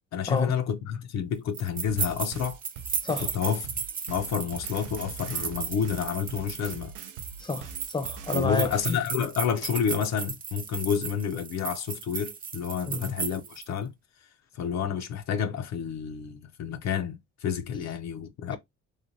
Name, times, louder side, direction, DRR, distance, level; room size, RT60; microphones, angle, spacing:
voice 1, 0.1-2.6 3.2-3.7 4.1-6.9 8.3-13.9 14.5-18.6, left 7 dB, 65° left, 0.5 m, -29 dB
sound 1, 1.5-13.7, right 6 dB, 30° right, 0.5 m, -35 dB
sound 2, 1.9-8.9, right 6 dB, 85° right, 0.5 m, -43 dB
voice 2, 7.4-9.0 12.9-13.1, left 3 dB, 15° left, 0.6 m, -30 dB
3.2 x 2.1 x 2.5 m
cardioid pair, 90°, 30 cm